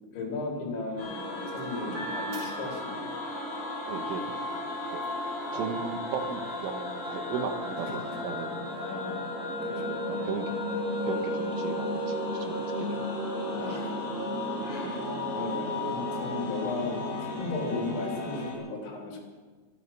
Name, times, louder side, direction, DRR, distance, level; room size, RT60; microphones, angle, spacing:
voice 1, 0.1-3.2 8.8-10.4 13.6-14.0 14.6-19.2, left 3 dB, 70° left, 0 dB, 5.5 m, -36 dB
sound 1, 1.0-18.6, left 1 dB, 35° left, 5.0 m, -34 dB
sound 2, 1.5-3.4 3.8-9.3 9.9-10.0 10.3-18.3, right 2 dB, 40° right, 5.9 m, -48 dB
voice 2, 3.9-4.2 4.9-5.0 5.5-8.6 9.9-12.2 12.4-13.1 13.7-13.8, right 7 dB, 85° right, 6 dB, 3.7 m, -36 dB
24.0 x 9.9 x 5.8 m, 1.4 s
omnidirectional pair, 5.6 m